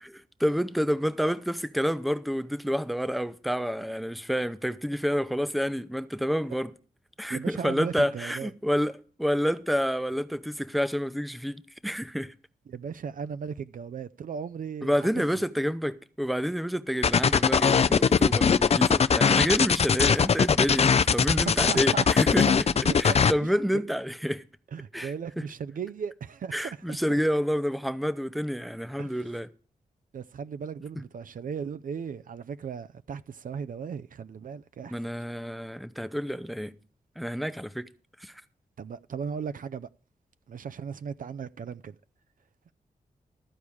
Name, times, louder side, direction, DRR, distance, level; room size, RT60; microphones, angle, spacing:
voice 1, 0.0-6.7 7.2-12.3 14.8-22.6 23.0-24.4 24.9-25.4 26.5-29.5 34.9-36.7 37.2-37.8 38.2-38.3, equal, ahead, 0.7 m, -29 dB
voice 2, 7.3-8.5 12.7-15.1 21.3-22.1 22.8-23.5 23.9-24.0 24.7-27.2 29.0-29.2 30.1-35.0 38.8-39.9 40.5-42.0, right 6 dB, 70° right, 0.5 m, -37 dB
sound 1, 17.0-23.3, left 6 dB, 45° left, 0.4 m, -21 dB
13.5 x 4.8 x 8.6 m
cardioid pair, 75°, 15 cm